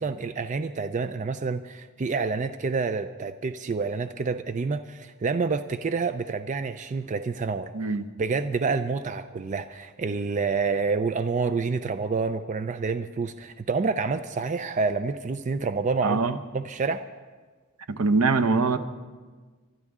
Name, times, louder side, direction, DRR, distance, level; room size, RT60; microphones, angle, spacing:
voice 1, 0.0-7.7 8.2-17.0, right 4 dB, 35° right, 10 dB, 0.4 m, -28 dB
voice 2, 7.7-8.1 16.0-16.4 17.9-18.8, right 4 dB, 80° right, 9 dB, 0.8 m, -23 dB
23.5 x 12.0 x 3.6 m, 1.4 s
head